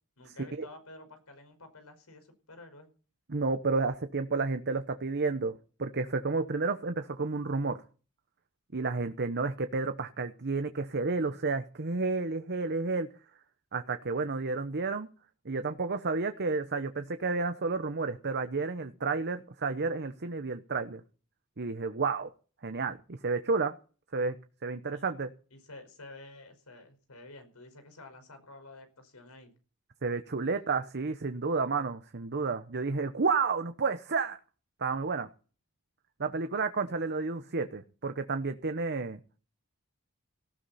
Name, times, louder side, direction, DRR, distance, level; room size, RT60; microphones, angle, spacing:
voice 1, 0.2-2.9 24.9-25.0 25.5-29.5, left 2 dB, 85° left, 5.1 m, -50 dB
voice 2, 3.3-5.5 5.8-7.8 8.7-13.1 13.7-15.1 15.4-21.0 21.6-22.3 22.6-23.7 24.1-24.3 24.6-25.3 30.0-34.4 34.8-35.3 36.2-39.2, right 4 dB, 50° right, 1.0 m, -31 dB
18.0 x 15.0 x 4.2 m
head